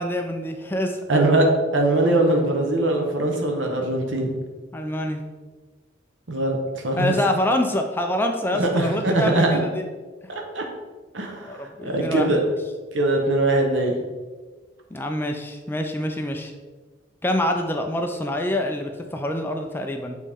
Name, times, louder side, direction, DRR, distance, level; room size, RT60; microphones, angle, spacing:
voice 1, 0.0-1.1 4.7-5.2 7.0-9.8 11.4-12.4 14.9-16.5 17.2-20.2, left 1 dB, 10° left, 4 dB, 0.4 m, -26 dB
voice 2, 1.1-1.5 1.7-4.4 6.3-7.1 8.6-9.6 10.3-10.6 11.1-12.4 12.9-13.9, right 2 dB, 90° right, 2 dB, 1.0 m, -22 dB
7.3 x 4.1 x 3.5 m, 1.3 s
head